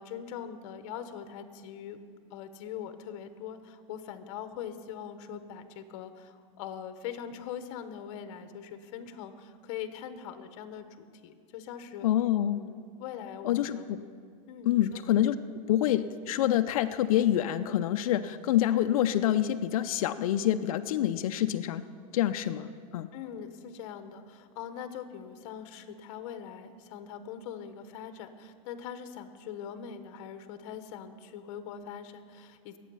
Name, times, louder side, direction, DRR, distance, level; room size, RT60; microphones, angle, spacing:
voice 1, 0.0-2.0 2.3-12.1 12.5-13.8 14.5-14.8 23.1-32.8, left 8 dB, 60° left, 9 dB, 1.1 m, -42 dB
voice 2, 12.0-12.6 13.4-14.0 14.7-21.8 22.1-23.1, left 12 dB, 90° left, 8 dB, 0.6 m, -27 dB
21.0 x 8.4 x 5.5 m, 2.1 s
supercardioid pair, 155°, 18 cm